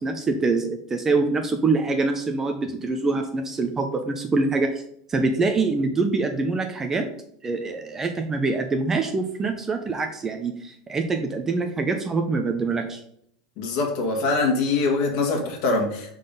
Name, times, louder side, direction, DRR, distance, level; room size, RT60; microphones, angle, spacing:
voice 1, 0.0-4.8 5.1-7.1 7.4-13.0, right 3 dB, 15° right, 5 dB, 0.4 m, -25 dB
voice 2, 13.6-16.1, left 3 dB, 45° left, 2 dB, 1.5 m, -23 dB
5.7 x 3.9 x 5.1 m, 0.69 s
supercardioid pair, 170°, 3 cm